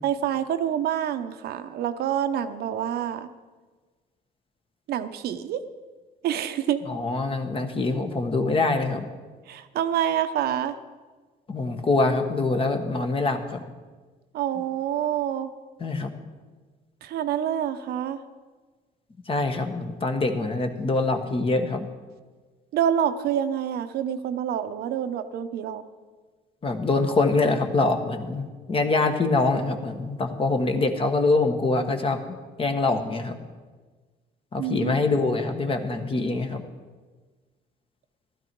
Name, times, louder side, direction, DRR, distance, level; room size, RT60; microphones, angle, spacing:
voice 1, 0.0-3.3 4.9-5.6 6.2-6.8 9.5-10.8 14.3-15.5 17.0-18.2 22.7-25.8 34.6-34.9, right 10 dB, 70° right, 9 dB, 0.8 m, -27 dB
voice 2, 6.9-9.1 11.5-13.6 15.8-16.1 19.3-21.9 26.6-33.4 34.5-36.6, left 3 dB, 35° left, 6 dB, 1.4 m, -24 dB
14.5 x 12.5 x 4.6 m, 1.4 s
cardioid pair, 110°, 17 cm